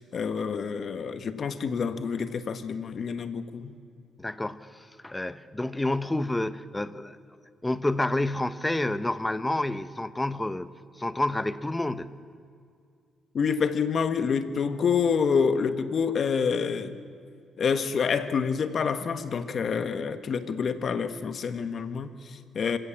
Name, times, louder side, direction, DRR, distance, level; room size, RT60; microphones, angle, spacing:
voice 1, 0.0-3.7 13.3-17.0 17.6-22.8, left 6 dB, 50° left, 10 dB, 1.3 m, -27 dB
voice 2, 4.2-7.2 7.6-10.7 11.0-12.2, left 1 dB, 10° left, 14 dB, 0.8 m, -29 dB
27.0 x 16.5 x 7.3 m, 2.3 s
cardioid pair, 90°, 0 cm